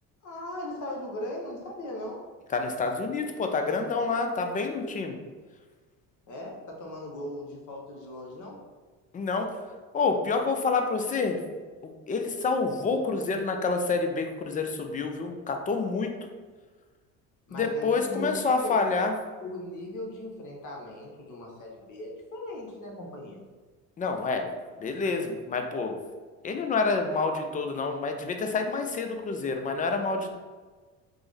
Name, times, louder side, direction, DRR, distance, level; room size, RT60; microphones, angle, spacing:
voice 1, 0.2-2.2 6.3-8.6 17.5-18.8 19.4-23.4, left 1 dB, 45° left, -1 dB, 0.8 m, -38 dB
voice 2, 2.5-5.2 9.1-9.5 9.9-11.4 11.8-16.2 17.5-19.1 24.0-24.5 24.8-25.9 26.4-30.3, left 4 dB, 20° left, 4 dB, 0.4 m, -28 dB
3.4 x 2.0 x 3.2 m, 1.4 s
hypercardioid pair, 65°, 43 cm